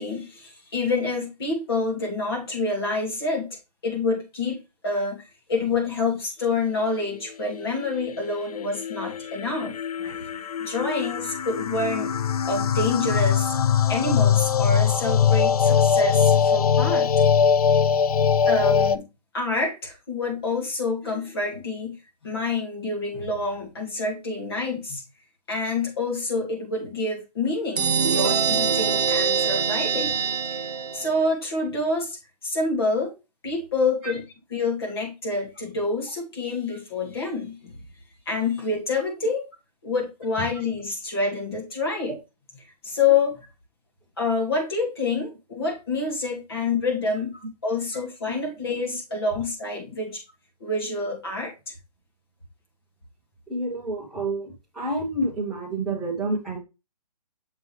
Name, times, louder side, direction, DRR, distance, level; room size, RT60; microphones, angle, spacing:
voice 1, 0.0-3.5 3.8-5.2 5.5-12.1 12.5-13.6 13.9-17.1 18.5-19.0 19.3-22.0 22.2-25.0 25.5-30.2 30.9-33.1 33.4-34.2 34.5-37.8 38.3-39.5 39.8-42.1 42.8-43.4 44.2-47.3 47.6-50.2 50.6-51.7, left 3 dB, 35° left, 2.6 m, -27 dB
sound 1, 7.6-19.0, left 7 dB, 65° left, 0.5 m, -22 dB
sound 2, 27.8-31.3, right 6 dB, 80° right, 0.9 m, -24 dB
voice 2, 53.5-56.6, right 2 dB, ahead, 0.9 m, -29 dB
6.9 x 5.3 x 3.2 m
hypercardioid pair, 180°, 20 cm